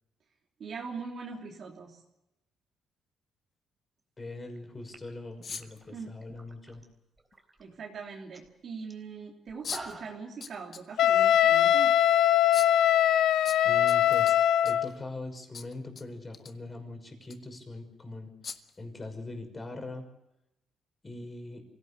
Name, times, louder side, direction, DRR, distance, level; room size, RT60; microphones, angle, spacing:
voice 1, 0.6-2.0 5.9-6.2 7.6-11.9, right 5 dB, 55° right, -1 dB, 3.3 m, -41 dB
voice 2, 4.2-6.8 13.6-14.3 14.6-18.3 18.8-20.0 21.0-21.6, left 2 dB, 25° left, 6 dB, 5.9 m, -41 dB
sound 1, 4.5-4.6 4.9-6.9 7.2-7.6 8.0-8.1 8.3-8.5 8.9-9.0 9.5-10.3, right 2 dB, 20° right, 4.0 m, -47 dB
sound 2, 5.4-5.8 7.3-7.4 9.6-10.0 10.4-10.9 11.2-11.3 12.5-12.8 13.5-14.9 15.5-16.0 16.3-16.5 17.2-17.4 18.4-18.8, left 6 dB, 50° left, 1.6 m, -40 dB
Wind instrument woodwind instrument, 11.0-14.9, left 11 dB, 75° left, 0.8 m, -22 dB
25.0 x 17.0 x 8.3 m, 0.91 s
cardioid pair, 90°, 0 cm